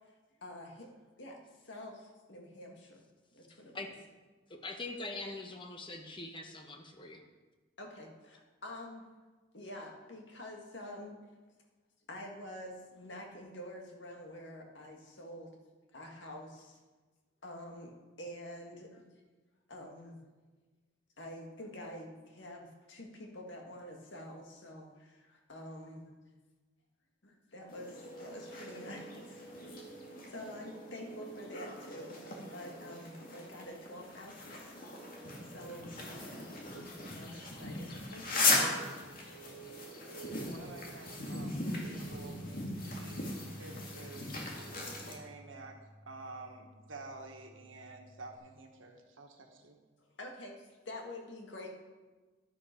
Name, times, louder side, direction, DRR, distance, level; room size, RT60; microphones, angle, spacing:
voice 1, 0.4-0.9 1.2-1.4 1.6-3.0 3.3-3.9 7.8-9.1 9.5-11.2 12.1-15.6 15.9-16.8 17.4-17.9 18.2-19.1 19.7-20.2 21.2-26.1 27.2-29.4 29.9-30.0 30.3-32.2 32.5-34.7 35.4-36.0 37.2-38.9 50.2-51.7, left 1 dB, 70° left, 1 dB, 1.8 m, -47 dB
voice 2, 4.5-7.2, left 2 dB, 25° left, 4 dB, 1.1 m, -43 dB
sound 1, 27.7-45.1, left 2 dB, 45° left, 2.2 m, -38 dB
voice 3, 40.2-42.4 42.9-44.4 45.0-45.8 46.1-49.8, right 3 dB, 90° right, 3 dB, 1.5 m, -50 dB
sound 2, 42.1-48.4, left 1 dB, 20° right, 0.9 m, -53 dB
11.0 x 10.5 x 4.5 m, 1.3 s
head